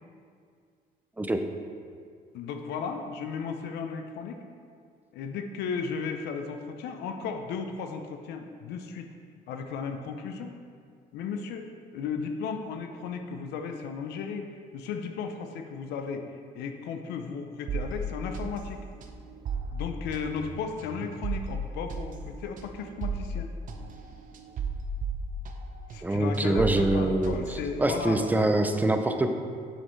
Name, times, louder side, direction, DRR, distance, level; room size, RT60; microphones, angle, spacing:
voice 1, 2.3-4.4 5.1-9.1 9.5-10.5 11.1-14.5 14.7-16.2 16.5-18.8 19.7-23.5 25.9-28.2, left 5 dB, 80° left, 5 dB, 0.6 m, -35 dB
sound 1, 17.7-26.1 26.3-28.3, right 3 dB, 50° right, 0.7 m, -35 dB
voice 2, 26.0-29.3, right 1 dB, 10° right, 6 dB, 0.5 m, -25 dB
7.6 x 6.5 x 3.1 m, 2.1 s
cardioid pair, 110°, 17 cm